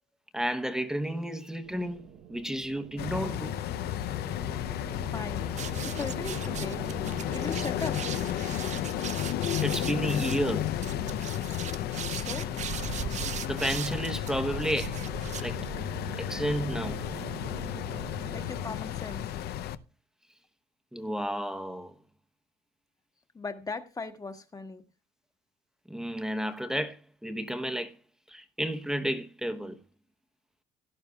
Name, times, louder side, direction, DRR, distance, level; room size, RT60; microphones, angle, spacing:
voice 1, 0.3-3.5 9.6-10.7 13.3-14.9 15.4-15.6 16.2-17.0 20.9-21.9 25.9-27.9 28.3-29.8, equal, 5° right, 0.9 m, -32 dB
sound 1, 1.6-18.8, right 8 dB, 80° right, 1.0 m, -45 dB
sound 2, 3.0-19.8, left 12 dB, 70° left, 0.6 m, -33 dB
schuh gequitsche, 5.6-16.0, right 9 dB, 45° right, 0.5 m, -39 dB
voice 2, 5.8-6.8 7.3-8.0 12.1-12.5 18.3-19.2 23.3-24.8, left 4 dB, 20° left, 1.4 m, -38 dB
17.0 x 11.0 x 2.3 m
cardioid pair, 110°, 17 cm